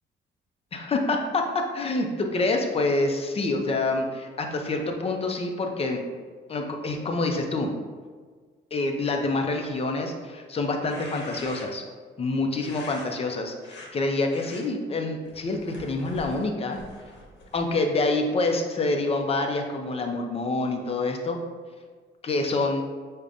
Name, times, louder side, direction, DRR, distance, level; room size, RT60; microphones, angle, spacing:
voice 1, 0.7-6.0 6.5-7.7 8.7-11.8 12.2-16.8 17.5-21.4 22.2-22.8, left 2 dB, 30° left, 3 dB, 0.5 m, -27 dB
sound 1, 10.7-11.9 12.6-13.1 13.6-13.9 14.3-14.6 15.2-17.8, left 1 dB, 65° left, 0.9 m, -44 dB
5.0 x 2.2 x 2.4 m, 1.5 s
cardioid pair, 90°, 20 cm